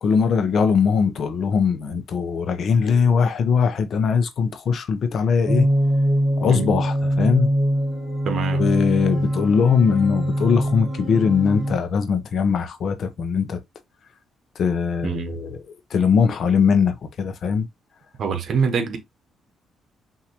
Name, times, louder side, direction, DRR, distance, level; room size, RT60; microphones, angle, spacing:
voice 1, 0.0-5.7 6.4-7.5 8.5-13.6 14.6-15.6 15.9-17.7, left 6 dB, 60° left, 0.8 m, -20 dB
sound 1, 5.5-11.8, equal, 10° right, 1.3 m, -23 dB
voice 2, 8.2-8.7 15.0-15.4 18.2-19.0, right 6 dB, 60° right, 1.2 m, -25 dB
5.9 x 2.8 x 2.9 m
cardioid pair, 90°, 0 cm